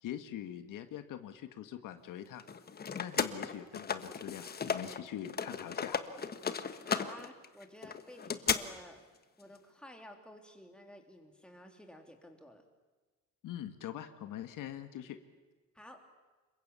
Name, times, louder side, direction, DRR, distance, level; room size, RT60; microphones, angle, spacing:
voice 1, 0.0-2.4 3.0-6.0 13.4-15.2, left 11 dB, 70° left, 9 dB, 1.7 m, -43 dB
sound 1, 2.4-5.0 5.3-8.6, left 6 dB, 30° left, 1.4 m, -35 dB
voice 2, 6.9-9.0 9.4-12.6 15.7-16.0, left 1 dB, 5° left, 3 dB, 3.4 m, -53 dB
27.0 x 22.5 x 8.4 m, 1.3 s
cardioid pair, 135°, 33 cm